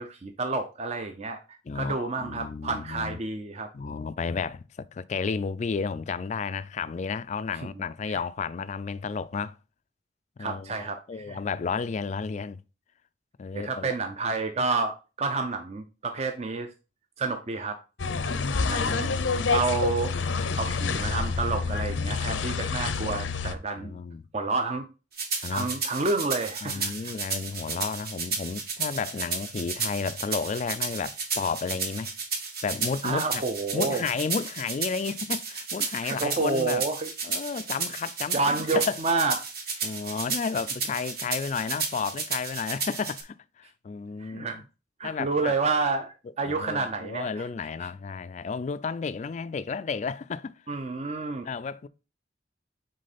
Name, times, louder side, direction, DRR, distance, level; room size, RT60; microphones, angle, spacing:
voice 1, 0.0-3.7 8.0-8.2 10.4-11.0 11.2-11.4 13.5-16.7 17.2-17.8 18.3-18.4 18.7-20.1 20.5-24.0 24.3-24.8 25.5-27.1 33.0-34.0 36.0-37.1 38.3-39.4 39.8-39.9 44.2-44.6 45.0-47.5 50.7-51.4, right 3 dB, 35° right, 0.6 m, -29 dB
voice 2, 1.7-3.2 3.7-9.6 10.4-12.6 13.4-13.9 18.3-19.6 20.3-20.6 23.8-24.3 25.4-25.7 26.6-32.1 32.6-33.4 33.7-36.8 37.2-39.0 39.8-44.6 45.0-45.5 46.4-50.5 51.4-51.9, left 5 dB, 40° left, 0.3 m, -32 dB
sound 1, 18.0-23.5, left 4 dB, 85° left, 0.6 m, -28 dB
sound 2, 25.2-43.2, right 5 dB, 55° right, 1.4 m, -33 dB
6.4 x 4.2 x 4.1 m
head